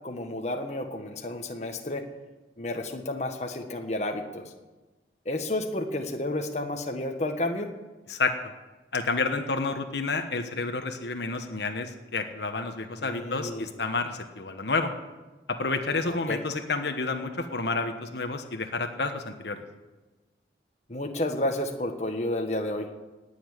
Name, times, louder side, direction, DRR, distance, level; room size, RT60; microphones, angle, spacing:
voice 1, 0.0-2.0 2.6-4.4 5.2-7.7 13.0-13.7 16.1-16.4 20.9-22.9, left 1 dB, 40° left, 4 dB, 1.4 m, -31 dB
voice 2, 8.9-14.9 15.5-19.6, left 3 dB, 75° left, 6 dB, 1.2 m, -30 dB
18.5 x 7.1 x 9.8 m, 1.2 s
head